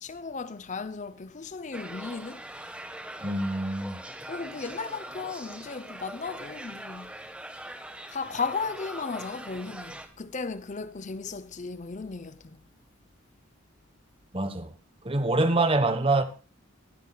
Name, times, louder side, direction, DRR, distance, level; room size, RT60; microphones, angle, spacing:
voice 1, 0.0-2.5 4.3-7.1 8.1-12.6, left 4 dB, 35° left, 0.6 m, -35 dB
sound 1, 1.7-10.1, right 1 dB, 5° right, 1.3 m, -42 dB
voice 2, 3.2-4.0 14.3-14.7 15.0-16.2, right 2 dB, 25° right, 1.3 m, -25 dB
22.0 x 10.5 x 2.3 m
head